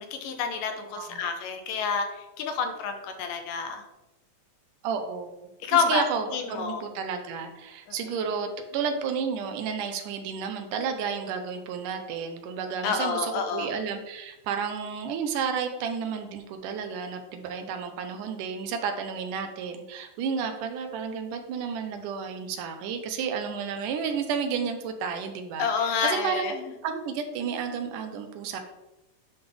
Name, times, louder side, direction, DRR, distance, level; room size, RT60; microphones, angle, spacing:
voice 1, 0.0-3.8 5.6-6.8 12.8-13.7 25.6-26.7, left 5 dB, 90° left, 6 dB, 2.4 m, -28 dB
voice 2, 0.9-1.2 4.8-26.6 26.8-28.6, right 6 dB, 80° right, 6 dB, 2.2 m, -32 dB
9.6 x 3.5 x 3.4 m, 0.98 s
omnidirectional pair, 3.7 m